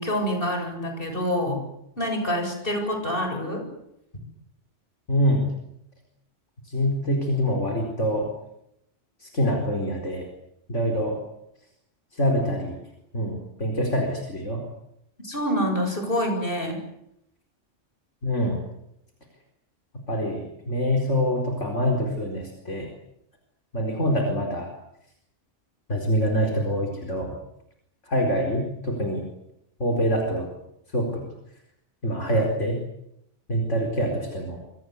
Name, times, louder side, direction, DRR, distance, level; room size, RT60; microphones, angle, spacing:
voice 1, 0.0-1.6 2.0-3.7 15.2-16.8, equal, 45° left, 4 dB, 8.0 m, -26 dB
voice 2, 5.1-5.5 6.6-8.3 9.2-10.3 10.7-11.2 12.1-12.7 13.1-14.6 18.2-18.6 20.1-22.9 23.7-24.7 25.9-27.3 28.0-29.2 29.8-30.5 30.9-31.3 32.0-32.8 33.5-34.6, equal, 75° left, 2 dB, 4.7 m, -25 dB
27.5 x 24.5 x 8.2 m, 0.79 s
omnidirectional pair, 1.2 m